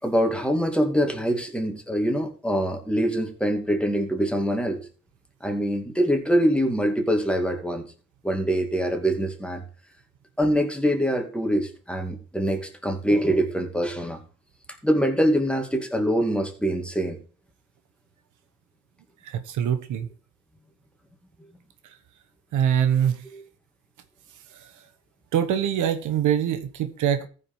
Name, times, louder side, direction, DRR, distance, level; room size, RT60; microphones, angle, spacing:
voice 1, 0.0-4.8 5.4-7.9 8.2-9.6 10.4-14.2 14.8-17.2 23.3-23.4, equal, 5° left, 2.5 m, -24 dB
voice 2, 19.2-20.1 22.5-23.2 25.3-27.3, right 9 dB, 80° right, 1.2 m, -23 dB
14.5 x 5.1 x 5.5 m
cardioid pair, 90°, 30 cm